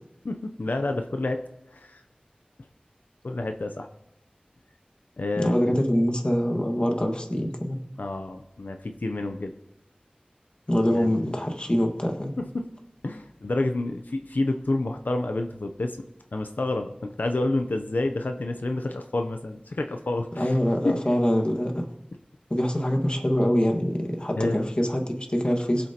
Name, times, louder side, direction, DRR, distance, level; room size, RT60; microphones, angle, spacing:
voice 1, 0.2-1.4 1.7-2.0 3.2-3.9 5.2-5.8 8.0-9.5 10.9-11.3 12.4-12.7 13.0-16.0 16.3-20.6 20.8-21.0 24.3-24.7, left 2 dB, 85° left, 5 dB, 0.6 m, -29 dB
voice 2, 5.4-7.8 10.7-12.3 20.4-21.8 22.5-25.9, equal, 35° left, 3 dB, 1.6 m, -24 dB
21.5 x 7.6 x 2.9 m, 0.86 s
wide cardioid pair, 45°, 3 cm